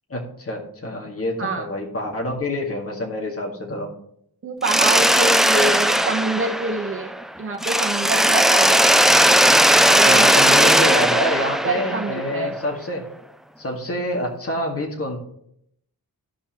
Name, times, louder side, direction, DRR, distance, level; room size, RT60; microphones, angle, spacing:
voice 1, 0.1-3.9 10.1-13.0 13.6-15.2, left 1 dB, 40° left, 0 dB, 2.0 m, -27 dB
voice 2, 4.4-7.1 7.4-8.9 9.9-11.0 11.6-12.6, right 2 dB, 35° right, 2 dB, 1.3 m, -26 dB
Mechanisms, 4.6-7.2 7.6-12.5, equal, ahead, 0.3 m, -17 dB
16.0 x 5.5 x 3.1 m, 0.72 s
wide cardioid pair, 115°, 36 cm